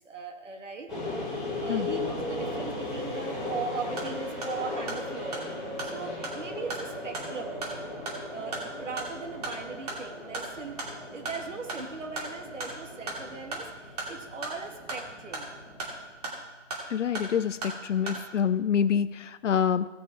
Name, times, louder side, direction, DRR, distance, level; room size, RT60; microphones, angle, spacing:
voice 1, 0.1-0.9 1.6-5.4 5.8-7.6 8.3-15.5, right 4 dB, 80° right, 4 dB, 2.1 m, -39 dB
sound 1, 0.9-16.1, left 2 dB, ahead, 1.0 m, -37 dB
sound 2, 3.9-18.2, right 2 dB, 30° right, 2.5 m, -39 dB
voice 2, 16.9-19.9, left 8 dB, 75° left, 12 dB, 0.6 m, -26 dB
16.5 x 6.1 x 4.7 m, 1.2 s
hypercardioid pair, 170°, 37 cm